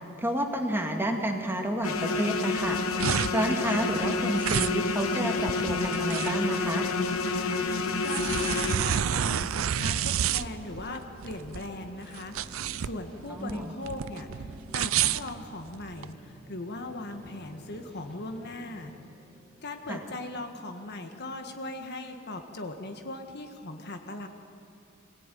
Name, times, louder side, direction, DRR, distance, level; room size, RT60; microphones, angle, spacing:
voice 1, 0.2-2.8 3.3-6.9 13.3-13.7 19.9-20.0, right 1 dB, 10° right, 2 dB, 2.1 m, -30 dB
sound 1, 1.8-8.8, left 3 dB, 90° left, 1.4 m, -29 dB
sound 2, 2.6-16.1, right 9 dB, 70° right, 0.5 m, -30 dB
sound 3, 4.3-20.6, equal, 5° left, 3.0 m, -51 dB
voice 2, 8.0-18.9 19.6-24.3, left 2 dB, 50° left, 5 dB, 1.7 m, -39 dB
26.0 x 17.5 x 9.3 m, 2.6 s
head